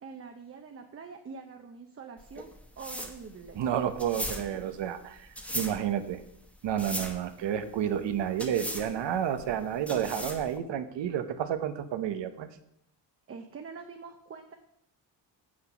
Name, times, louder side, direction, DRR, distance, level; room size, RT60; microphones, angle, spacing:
voice 1, 0.0-2.5 2.8-3.6 13.3-14.5, right 5 dB, 30° right, 4 dB, 0.7 m, -45 dB
sound 1, 2.2-10.6, equal, 5° left, 0.8 m, -39 dB
voice 2, 3.6-6.2 6.6-12.5, right 9 dB, 85° right, 10 dB, 1.0 m, -30 dB
7.7 x 6.3 x 6.0 m, 0.75 s
wide cardioid pair, 155°, 42 cm